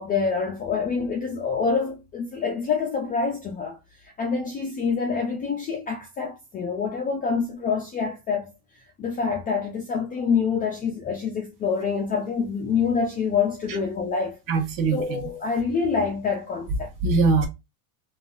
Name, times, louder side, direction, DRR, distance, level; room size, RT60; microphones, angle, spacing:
voice 1, 0.0-3.8 4.2-8.5 9.0-14.4 14.9-16.9, left 5 dB, 20° left, 0.3 m, -26 dB
voice 2, 14.5-15.2 17.0-17.5, right 4 dB, 45° right, 1.1 m, -22 dB
3.5 x 2.4 x 2.3 m
supercardioid pair, 140°, 47 cm